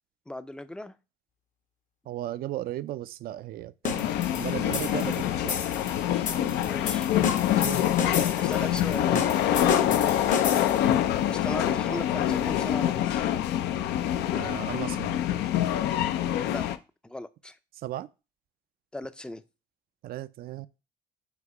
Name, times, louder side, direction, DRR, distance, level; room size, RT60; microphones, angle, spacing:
voice 1, 0.3-0.9 6.6-7.1 8.4-9.3 11.3-13.3 16.5-16.7 17.0-17.6 18.9-19.4, left 1 dB, 5° left, 0.4 m, -37 dB
voice 2, 2.1-5.6 7.5-7.8 8.6-8.7 9.9-10.2 14.3-15.2 17.8-18.1 20.0-20.7, right 14 dB, 60° right, 0.4 m, -36 dB
sound 1, 3.9-16.8, left 11 dB, 80° left, 0.5 m, -26 dB
sound 2, 3.9-11.0, left 6 dB, 50° left, 0.9 m, -33 dB
sound 3, 4.6-5.4 6.1-7.7 8.7-13.0 13.2-13.3, right 9 dB, 80° right, 1.8 m, -49 dB
8.2 x 2.8 x 4.8 m
cardioid pair, 110°, 17 cm